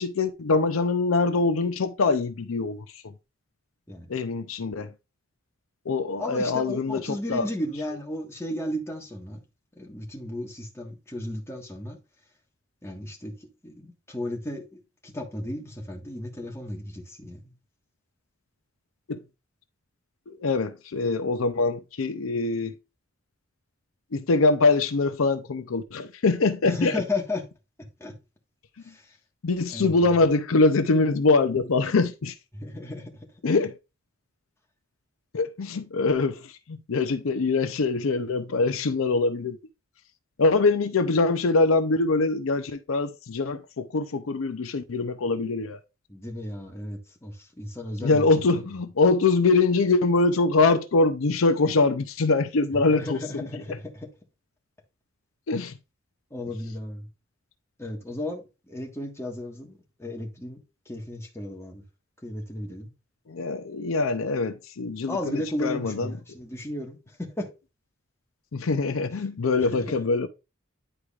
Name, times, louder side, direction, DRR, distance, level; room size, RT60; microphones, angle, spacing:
voice 1, 0.0-3.1 4.1-4.9 5.9-7.5 19.1-19.2 20.3-22.8 24.1-27.0 29.4-32.3 33.4-33.7 35.3-39.6 40.4-45.8 48.0-53.5 55.5-55.7 63.3-66.1 68.5-70.3, left 3 dB, 75° left, 0.6 m, -23 dB
voice 2, 6.2-9.4 9.8-12.0 12.8-17.5 26.6-27.4 28.0-28.1 28.8-29.0 29.7-30.1 32.5-33.1 46.1-48.3 48.5-48.8 52.7-54.1 56.3-57.1 57.8-60.6 60.9-61.8 62.2-62.9 65.1-67.5 69.6-70.0, left 1 dB, 15° left, 1.5 m, -34 dB
10.0 x 4.8 x 2.4 m
head